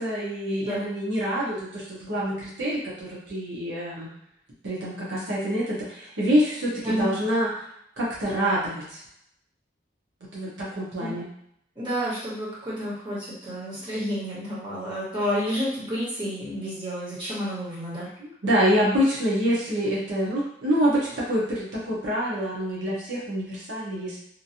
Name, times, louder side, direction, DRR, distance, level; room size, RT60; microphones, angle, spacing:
voice 1, 0.0-4.1 4.6-7.6 8.0-9.0 10.3-11.3 18.2-24.2, equal, 80° right, -7 dB, 1.0 m, -26 dB
voice 2, 11.8-18.1, equal, 25° right, -9 dB, 1.4 m, -30 dB
3.0 x 2.5 x 2.8 m, 0.72 s
head